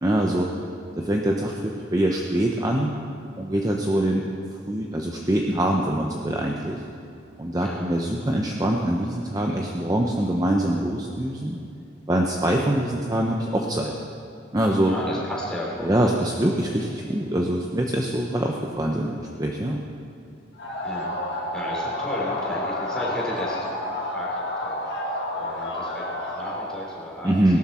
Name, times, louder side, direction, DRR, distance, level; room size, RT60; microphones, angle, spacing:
voice 1, 0.0-0.5 1.0-2.9 3.4-4.2 4.7-6.8 7.4-11.6 12.1-13.9 14.5-14.9 15.8-19.8 27.2-27.6, right 1 dB, 20° right, 0 dB, 0.7 m, -24 dB
voice 2, 14.9-16.0 20.8-24.8 25.0-27.6, equal, 5° left, -6 dB, 3.4 m, -34 dB
sound 1, 20.6-26.8, left 1 dB, 65° left, 2.0 m, -30 dB
18.0 x 12.0 x 4.3 m, 2.6 s
head